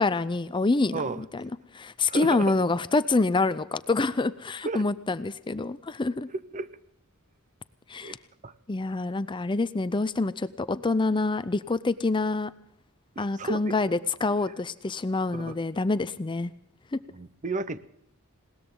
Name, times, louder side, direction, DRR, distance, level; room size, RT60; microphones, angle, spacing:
voice 1, 0.0-6.3 7.9-8.2 8.7-12.5 13.2-16.5 16.9-17.0, left 3 dB, 20° left, 14 dB, 0.5 m, -26 dB
voice 2, 2.1-2.5 4.6-4.8 6.5-6.7 8.0-8.2 8.4-8.5 13.2-13.7 15.3-15.6 17.1-17.8, right 3 dB, 35° right, 14 dB, 0.7 m, -33 dB
20.5 x 18.5 x 3.8 m, 0.78 s
head